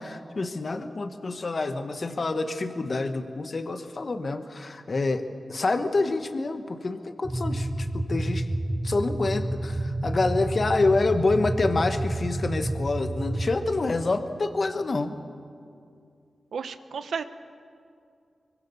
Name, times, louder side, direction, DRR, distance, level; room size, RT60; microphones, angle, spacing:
voice 1, 0.0-5.2 5.5-8.5 8.8-15.1, left 3 dB, 55° left, 8 dB, 1.4 m, -27 dB
sound 1, 7.2-13.5, right 1 dB, 20° right, 3.9 m, -29 dB
voice 2, 16.5-17.4, right 6 dB, 90° right, 11 dB, 1.0 m, -33 dB
24.5 x 23.5 x 7.1 m, 2.4 s
cardioid pair, 55°, 0 cm